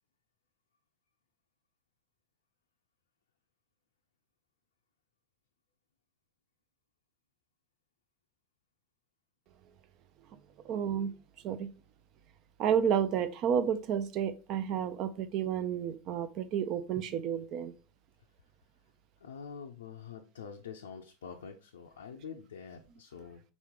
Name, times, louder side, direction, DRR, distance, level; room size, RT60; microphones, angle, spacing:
voice 1, 10.6-11.1 11.4-11.7 12.6-17.7, right 8 dB, 50° right, 0.5 m, -31 dB
voice 2, 19.2-23.4, left 6 dB, 80° left, 0.4 m, -46 dB
3.9 x 3.1 x 3.6 m
hypercardioid pair, 95°, 0 cm